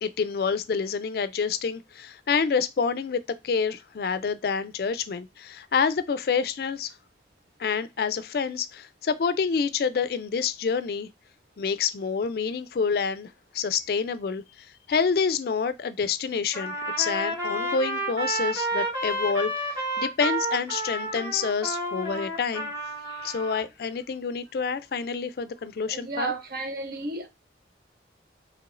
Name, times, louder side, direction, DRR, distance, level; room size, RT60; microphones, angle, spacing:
voice 1, 0.0-6.9 7.6-11.1 11.6-22.7 23.1-26.3, left 5 dB, 55° left, 0.4 m, -28 dB
Trumpet, 16.5-23.6, right 1 dB, 25° right, 2.3 m, -30 dB
voice 2, 25.9-27.3, right 3 dB, 55° right, 0.6 m, -32 dB
4.7 x 3.1 x 2.5 m
head